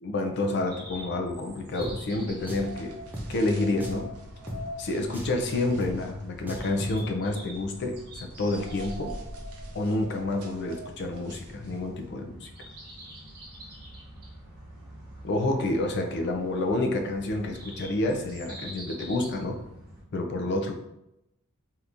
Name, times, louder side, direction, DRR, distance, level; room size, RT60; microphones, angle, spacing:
voice 1, 0.0-3.0 3.3-4.1 4.8-9.1 9.7-12.5 15.2-19.6 20.1-20.7, left 2 dB, 50° left, 4 dB, 0.4 m, -29 dB
sound 1, 0.7-20.0, right 1 dB, 45° right, 1.2 m, -46 dB
Drum, 1.8-1.9 2.5-2.7 3.1-3.3 3.8-4.1 4.5-4.6 5.1-5.4 5.8-5.9 6.5-7.0, equal, 10° right, 0.4 m, -36 dB
sound 2, 2.1-12.1, right 1 dB, 85° right, 0.6 m, -44 dB
3.4 x 2.8 x 2.5 m, 0.86 s
head